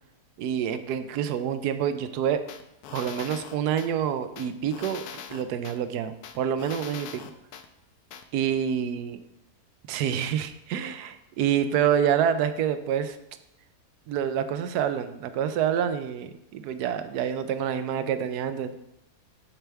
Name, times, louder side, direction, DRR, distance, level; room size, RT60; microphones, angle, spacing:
voice 1, 0.4-2.4 2.9-7.2 8.3-9.2 9.9-13.2 14.1-18.7, right 9 dB, 85° right, 11 dB, 1.2 m, -27 dB
sound 1, 2.5-3.9 4.4-5.8 6.2-7.7 8.1-8.2, left 8 dB, 75° left, 1.1 m, -41 dB
12.0 x 4.5 x 3.4 m, 0.84 s
omnidirectional pair, 1.7 m